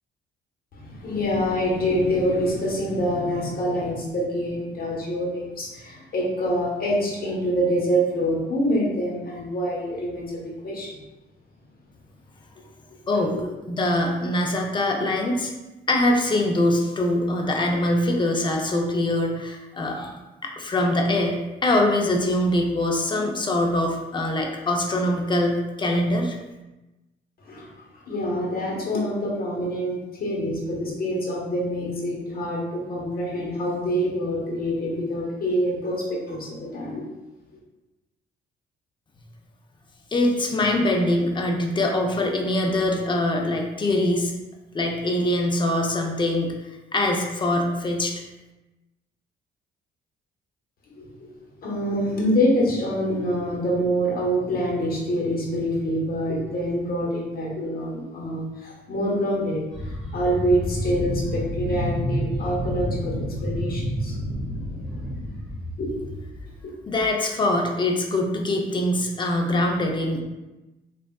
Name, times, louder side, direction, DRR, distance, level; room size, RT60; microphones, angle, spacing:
voice 1, 0.7-11.0 13.3-13.4 27.5-27.7 28.1-37.0 51.0-51.3 51.6-59.6 60.1-64.1 65.8-66.1, equal, 50° left, -3 dB, 1.0 m, -26 dB
voice 2, 13.1-13.4 13.7-15.5 15.9-20.2 20.4-26.4 40.1-44.3 44.7-46.5 46.9-48.1 66.9-70.2, left 1 dB, 25° left, 1 dB, 0.5 m, -23 dB
sound 1, 59.7-66.5 67.0-67.1, equal, ahead, 1.3 m, -29 dB
3.3 x 2.4 x 2.2 m, 1.0 s
cardioid pair, 90°, 20 cm